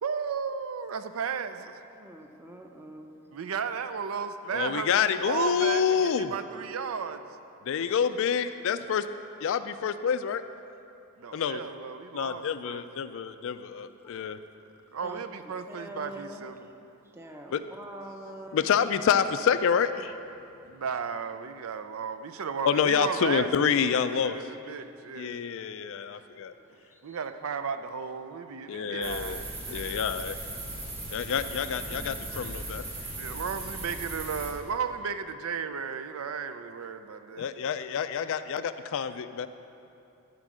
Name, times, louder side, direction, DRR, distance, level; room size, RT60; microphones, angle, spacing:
voice 1, 0.0-1.8 3.3-5.0 5.3-7.2 11.2-12.9 14.1-14.4 14.9-16.7 20.7-25.4 26.7-30.0 33.2-37.5, right 6 dB, 70° right, 10 dB, 0.5 m, -34 dB
voice 2, 2.0-3.1 15.0-15.2 15.7-16.8 17.1-18.7 26.5-26.6 26.9-27.2, right 1 dB, 10° right, 3 dB, 0.7 m, -44 dB
voice 3, 4.5-6.3 7.6-9.1 9.4-10.4 11.3-11.6 12.1-14.4 17.5-17.6 18.5-20.2 22.6-24.4 25.1-26.5 28.7-29.4 29.7-30.4 31.1-33.1 37.4-39.5, left 7 dB, 65° left, 11 dB, 0.4 m, -27 dB
sound 1, 29.0-34.5, right 2 dB, 30° right, 1.5 m, -38 dB
13.0 x 4.5 x 6.2 m, 2.7 s
head